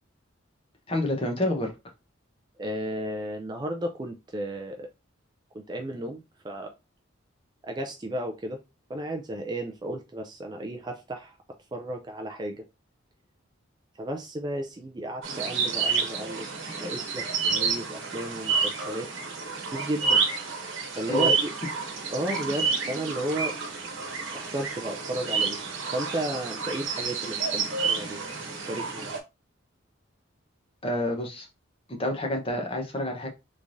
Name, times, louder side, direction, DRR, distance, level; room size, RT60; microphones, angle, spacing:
voice 1, 0.9-1.7 21.1-21.3 30.8-31.5 32.0-33.3, left 1 dB, 25° left, 0.9 m, -28 dB
voice 2, 2.6-4.9 5.5-6.7 7.6-8.6 8.9-11.3 11.7-12.6 14.0-16.5 16.8-19.1 19.7-20.3 21.0-21.5 22.1-23.6 24.3-25.6 25.9-28.2 28.6-29.1, right 1 dB, 20° right, 0.4 m, -33 dB
sound 1, 15.2-29.2, right 5 dB, 75° right, 1.1 m, -29 dB
3.5 x 3.1 x 2.6 m
head